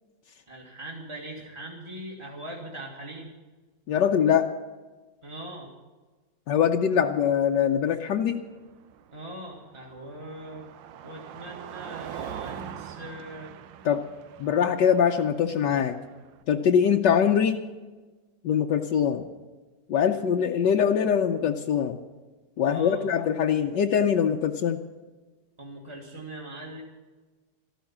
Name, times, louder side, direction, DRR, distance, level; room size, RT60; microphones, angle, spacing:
voice 1, 0.5-3.3 5.2-5.7 9.1-10.6 11.0-13.5 22.6-23.0 25.6-26.8, right 1 dB, 15° right, 0 dB, 1.7 m, -41 dB
voice 2, 3.9-4.5 6.5-8.4 13.8-14.1 14.4-16.0 16.5-17.6 18.4-19.3 19.9-22.0 22.6-24.8, left 8 dB, 75° left, 3 dB, 1.4 m, -23 dB
Car passing by, 8.1-16.4, right 9 dB, 80° right, 1.5 m, -43 dB
14.0 x 12.5 x 7.4 m, 1.3 s
omnidirectional pair, 2.0 m